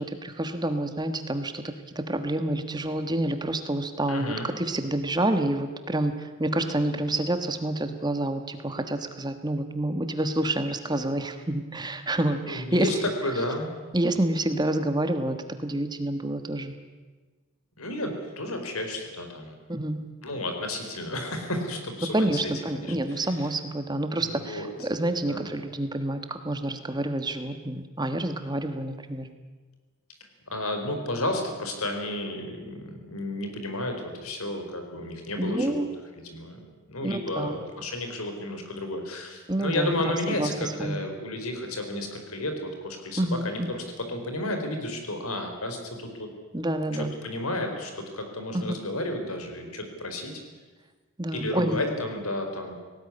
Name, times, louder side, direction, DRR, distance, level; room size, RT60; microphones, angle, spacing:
voice 1, 0.0-1.6 1.9-12.9 13.9-16.7 19.7-20.0 22.1-29.3 35.4-35.9 37.0-37.6 39.5-41.0 43.2-43.8 46.5-47.2 48.5-48.6 51.2-51.8, right 1 dB, 20° right, 8 dB, 1.3 m, -28 dB
voice 2, 4.1-4.5 12.4-13.7 17.8-19.6 20.2-23.3 24.2-24.7 25.3-25.4 30.5-35.9 36.2-46.3 47.0-50.4 51.3-52.7, left 1 dB, 80° left, 5 dB, 4.3 m, -32 dB
19.0 x 17.5 x 9.9 m, 1.3 s
head